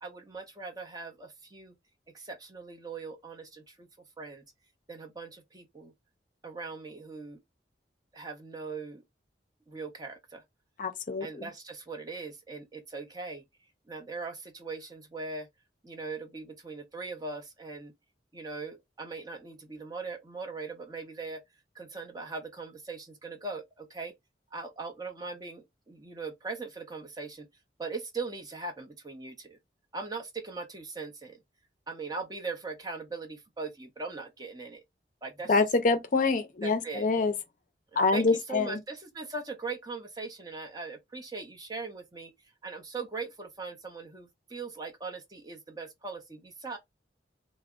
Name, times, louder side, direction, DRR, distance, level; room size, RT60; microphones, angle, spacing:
voice 1, 0.0-1.7 2.1-3.9 4.2-4.4 4.9-5.9 6.4-7.4 8.1-9.0 9.7-10.4 11.2-13.4 13.9-15.5 15.8-17.9 18.3-21.4 21.7-24.1 24.5-27.5 27.8-29.6 29.9-31.4 31.9-34.8 35.2-35.7 36.6-37.1 37.9-42.3 42.6-46.8, right 4 dB, 20° right, 0.7 m, -40 dB
voice 2, 10.8-11.3 35.5-37.3 38.0-38.8, left 3 dB, 45° left, 0.5 m, -25 dB
3.4 x 2.0 x 3.5 m
head